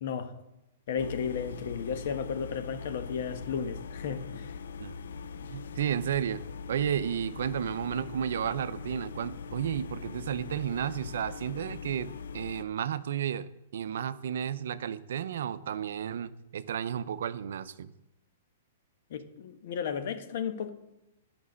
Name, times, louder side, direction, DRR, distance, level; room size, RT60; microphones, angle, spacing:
voice 1, 0.0-0.3 0.9-4.6 19.1-20.7, left 7 dB, 60° left, 9 dB, 1.2 m, -34 dB
sound 1, 1.0-12.6, left 6 dB, 80° left, 0.4 m, -42 dB
voice 2, 5.5-17.9, right 9 dB, 70° right, 14 dB, 0.6 m, -33 dB
11.0 x 6.1 x 6.3 m, 0.91 s
hypercardioid pair, 150°, 0 cm